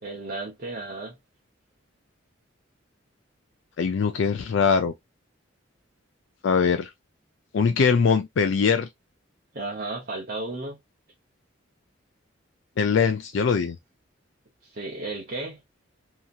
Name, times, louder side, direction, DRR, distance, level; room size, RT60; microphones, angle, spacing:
voice 1, 0.0-1.2 9.5-10.8 14.6-15.6, right 2 dB, 45° right, 0.7 m, -34 dB
voice 2, 3.8-4.9 6.4-6.9 7.5-8.9 12.8-13.8, left 5 dB, 65° left, 0.4 m, -22 dB
2.8 x 2.6 x 2.3 m
head